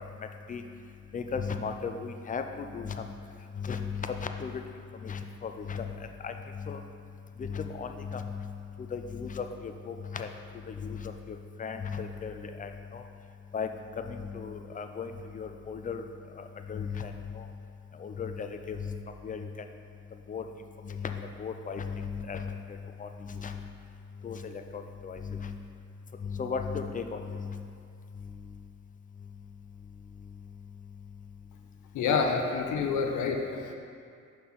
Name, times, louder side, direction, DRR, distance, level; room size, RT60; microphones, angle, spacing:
voice 1, 1.1-3.0 3.6-4.6 5.0-5.9 6.2-6.8 7.4-8.5 8.9-10.3 10.7-13.0 13.5-13.7 14.0-16.0 16.4-17.5 18.0-19.0 19.2-19.5 20.3-20.4 20.8-23.6 24.2-25.6 26.2-27.6, left 6 dB, 25° left, 6 dB, 0.5 m, -36 dB
voice 2, 31.9-33.7, left 5 dB, 80° left, 3 dB, 0.8 m, -28 dB
5.6 x 4.3 x 5.8 m, 2.4 s
cardioid pair, 90°, 30 cm